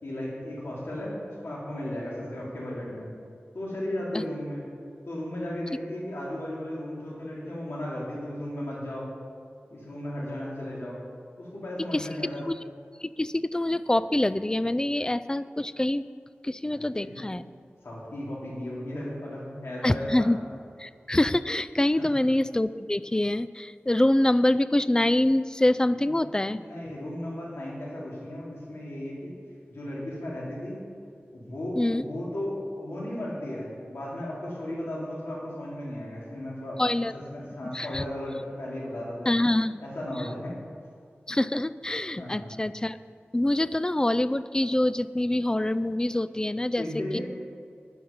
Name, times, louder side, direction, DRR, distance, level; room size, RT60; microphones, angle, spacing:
voice 1, 0.0-3.1 3.5-4.7 5.1-9.1 9.7-11.0 11.4-12.5 16.7-17.2 17.8-20.3 22.0-22.2 26.0-26.1 26.5-29.3 29.7-30.8 31.3-36.8 37.1-39.3 39.8-40.6 42.2-42.5 46.8-47.2, left 1 dB, 80° left, -5 dB, 3.5 m, -35 dB
voice 2, 13.0-16.1 16.4-17.4 19.8-20.4 20.8-26.6 26.9-27.0 31.8-32.0 36.8-37.1 37.7-38.0 39.3-39.8 41.3-43.0 43.3-46.8 47.1-47.2, left 1 dB, 20° left, 14 dB, 0.4 m, -25 dB
12.0 x 10.0 x 5.5 m, 2.3 s
wide cardioid pair, 70°, 4 cm